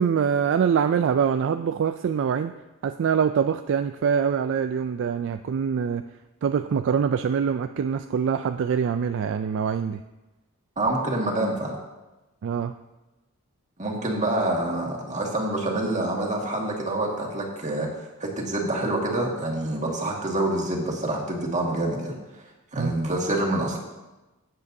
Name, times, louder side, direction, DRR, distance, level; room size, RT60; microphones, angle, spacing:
voice 1, 0.0-2.5 2.8-6.1 6.4-10.0 12.4-12.7 22.8-22.9, right 7 dB, 60° right, 9 dB, 0.3 m, -24 dB
voice 2, 10.8-11.8 13.8-17.9 18.2-22.2 22.7-23.8, right 1 dB, 35° right, -1 dB, 1.8 m, -26 dB
16.0 x 7.6 x 2.7 m, 1.1 s
head